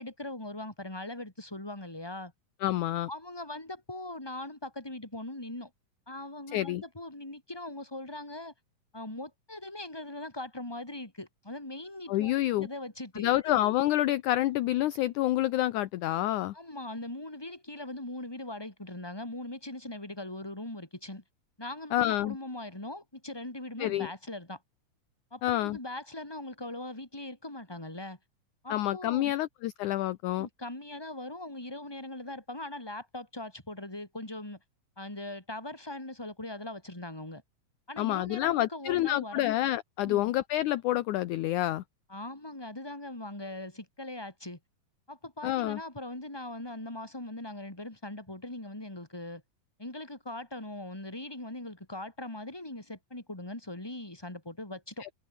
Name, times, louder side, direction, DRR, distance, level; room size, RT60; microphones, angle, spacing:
voice 1, 0.0-2.3 3.1-5.7 6.1-8.5 8.9-13.4 16.5-21.2 21.6-24.6 25.3-28.2 28.6-29.3 30.4-34.6 35.0-37.4 37.9-39.5 40.0-40.3 42.1-44.6 45.1-49.4 49.8-55.0, left 1 dB, 5° left, 4.4 m, -40 dB
voice 2, 2.6-3.1 6.5-6.8 12.1-12.7 13.2-16.5 21.9-22.4 23.8-24.1 25.4-25.8 28.7-30.5 38.0-41.8 45.4-45.8 55.0-55.1, left 15 dB, 75° left, 2.0 m, -28 dB
omnidirectional pair, 4.1 m